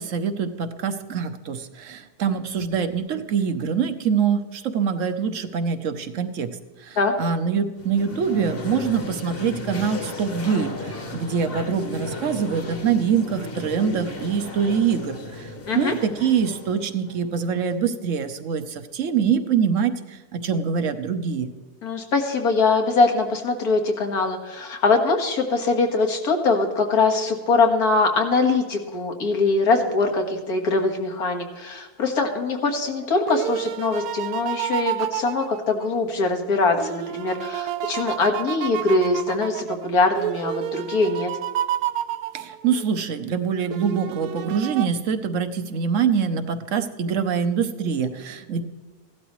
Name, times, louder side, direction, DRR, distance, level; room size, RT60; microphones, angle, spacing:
voice 1, 0.0-6.5 6.8-15.5 15.8-21.5 42.3-48.6, right 6 dB, 60° right, 9 dB, 1.1 m, -24 dB
sound 1, 7.8-17.8, left 3 dB, 40° left, 1.4 m, -35 dB
voice 2, 21.8-41.3, left 3 dB, 80° left, 3 dB, 2.1 m, -22 dB
sound 2, 32.7-36.3 36.8-42.9 43.7-44.9, right 12 dB, 85° right, 1.1 m, -30 dB
16.5 x 12.0 x 3.1 m, 1.3 s
omnidirectional pair, 1.6 m